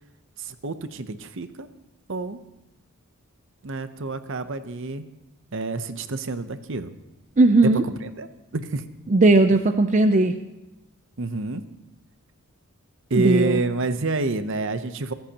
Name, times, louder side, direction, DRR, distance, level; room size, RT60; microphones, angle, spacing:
voice 1, 0.4-1.7 2.1-2.4 3.6-5.1 5.5-6.9 7.6-8.9 11.2-11.6 13.1-15.1, right 3 dB, 60° right, 11 dB, 0.8 m, -28 dB
voice 2, 7.4-7.8 9.1-10.4 13.2-13.6, right 2 dB, 35° right, 8 dB, 0.5 m, -17 dB
24.0 x 14.0 x 2.9 m, 0.94 s
head